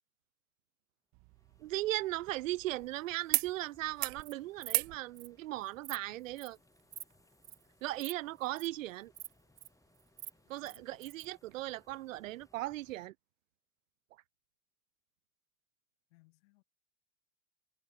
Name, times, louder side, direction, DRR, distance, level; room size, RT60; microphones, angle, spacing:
sound 1, 1.1-2.9 3.3-3.5 3.8-4.2 4.7-5.0 6.3-6.4, right 34 dB, 50° right, 0.8 m, -36 dB
sound 2, 1.2-13.1, left 2 dB, 10° left, 6.7 m, -69 dB
voice 1, 1.6-6.6 7.8-9.1 10.5-13.1, right 16 dB, 75° right, 1.1 m, -38 dB
Insect, 4.0-4.3 4.6-4.8 5.2-5.3 5.6-6.0 6.4-6.6 6.9-7.1 7.4-7.6 8.0-8.1 8.4-8.7 9.1-9.7 10.0-11.3, right 11 dB, 30° right, 1.4 m, -46 dB
voice 2, 10.4-11.1 16.1-16.6, left 23 dB, 65° left, 6.6 m, -66 dB
hypercardioid pair, 105°, 39 cm